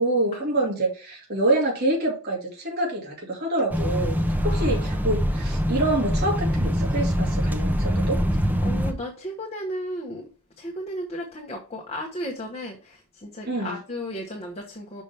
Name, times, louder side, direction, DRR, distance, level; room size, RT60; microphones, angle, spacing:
voice 1, 0.0-4.2 4.4-8.2 13.5-13.8, right 2 dB, 45° right, 2.4 m, -26 dB
sound 1, 3.7-8.9, equal, 10° right, 0.8 m, -24 dB
voice 2, 4.4-5.1 8.6-10.3 10.6-15.0, equal, 30° left, 1.2 m, -34 dB
6.1 x 5.5 x 3.4 m
head